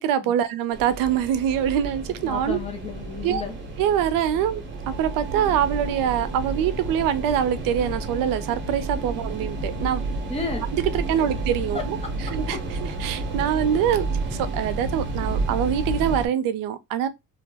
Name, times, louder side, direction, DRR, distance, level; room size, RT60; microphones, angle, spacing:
voice 1, 0.0-2.6 3.2-3.4 3.8-10.2 10.7-12.6 13.0-17.1, right 9 dB, 75° right, 0.5 m, -24 dB
sound 1, 0.7-16.3, right 2 dB, 35° right, 0.7 m, -31 dB
voice 2, 2.2-3.6 10.3-10.7 11.7-12.1, left 5 dB, 20° left, 0.4 m, -32 dB
2.3 x 2.0 x 3.3 m
cardioid pair, 165°, 34 cm